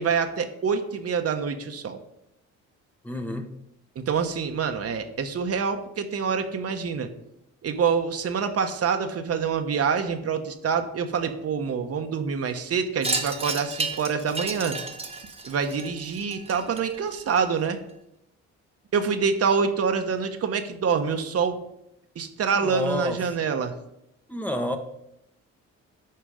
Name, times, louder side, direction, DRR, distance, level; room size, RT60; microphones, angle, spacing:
voice 1, 0.0-2.0 4.0-7.1 7.6-14.8 15.4-17.8 18.9-21.6 22.2-23.7, right 6 dB, 50° right, 7 dB, 1.1 m, -26 dB
voice 2, 3.0-3.6 22.6-23.2 24.3-24.8, left 1 dB, 5° left, 5 dB, 1.0 m, -29 dB
Wind chime, 13.0-17.7, right 3 dB, 20° right, 1.3 m, -32 dB
11.5 x 4.5 x 5.0 m, 0.80 s
cardioid pair, 90°, 30 cm